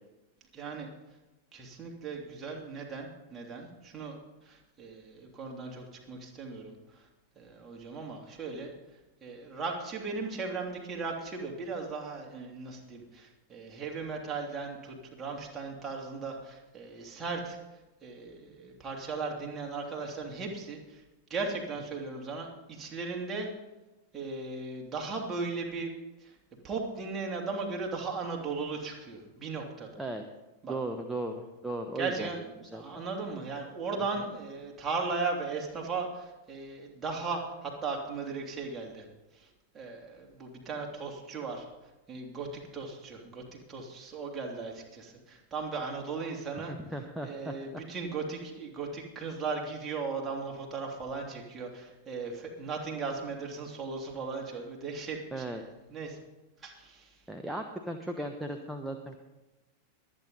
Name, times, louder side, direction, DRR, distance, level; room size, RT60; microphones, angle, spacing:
voice 1, 0.5-0.9 1.5-4.2 4.4-7.1 7.4-8.7 9.2-17.6 18.0-21.0 21.3-23.5 24.1-25.9 26.2-26.3 26.6-29.9 30.6-30.7 32.0-39.0 39.3-39.5 39.7-41.7 42.1-46.7 47.2-55.6 55.9-56.2 56.6-57.1, right 4 dB, 20° right, 0 dB, 3.0 m, -37 dB
voice 2, 30.7-32.3 32.7-32.8 46.7-47.8 55.3-55.6 57.3-59.2, right 1 dB, 5° right, 3 dB, 1.1 m, -36 dB
23.5 x 9.4 x 4.1 m, 1.1 s
figure-of-eight pair, 90°, 0 cm